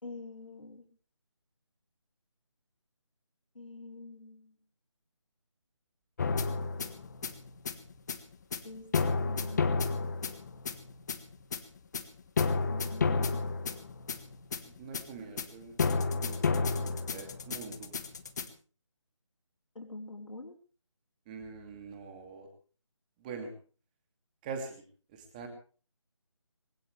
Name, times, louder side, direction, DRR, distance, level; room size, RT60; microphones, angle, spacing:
voice 1, 0.0-0.9 3.5-4.5 8.6-8.8 9.2-10.0 12.7-13.5 19.7-20.6, left 2 dB, 80° left, 2 dB, 4.1 m, -46 dB
sound 1, 6.2-18.5, left 4 dB, 35° left, 1.4 m, -31 dB
voice 2, 9.0-9.3 14.6-15.8 16.2-18.0 21.3-22.5 23.2-23.5 24.4-24.8 25.1-25.5, right 5 dB, 15° right, 5 dB, 2.5 m, -44 dB
21.0 x 18.0 x 3.4 m, 0.38 s
figure-of-eight pair, 160°, 16 cm